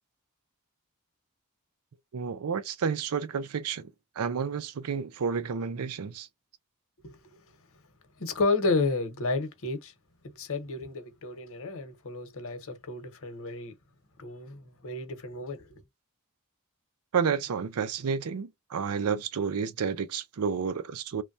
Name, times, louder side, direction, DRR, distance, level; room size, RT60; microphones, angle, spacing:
voice 1, 2.1-3.9 4.2-6.3 17.1-21.2, right 6 dB, 80° right, 0.5 m, -30 dB
voice 2, 7.0-7.4 8.2-9.9 10.3-13.7 14.2-15.7, left 3 dB, 65° left, 1.0 m, -31 dB
3.1 x 2.2 x 2.6 m
head